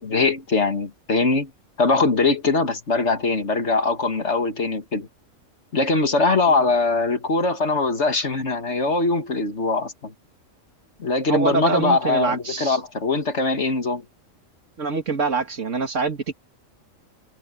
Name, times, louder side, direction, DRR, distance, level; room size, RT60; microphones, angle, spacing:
voice 1, 0.0-1.5 1.8-5.1 5.7-10.1 11.0-14.0, left 3 dB, 60° left, 2.2 m, -22 dB
voice 2, 11.3-12.8 14.8-16.3, right 4 dB, 65° right, 2.3 m, -25 dB
omnidirectional pair, 1.4 m